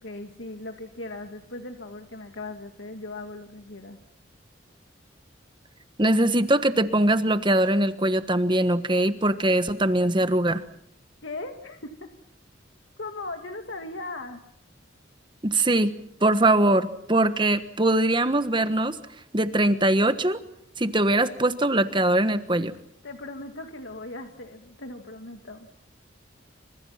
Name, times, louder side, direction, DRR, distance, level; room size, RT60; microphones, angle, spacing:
voice 1, 0.0-4.0 11.2-12.1 13.0-14.4 23.0-25.7, left 2 dB, 85° left, 5 dB, 2.1 m, -38 dB
voice 2, 6.0-10.6 15.4-15.9 16.2-19.0 19.3-20.4 20.8-22.7, right 1 dB, 25° right, 11 dB, 1.4 m, -22 dB
28.5 x 26.5 x 5.8 m, 0.69 s
head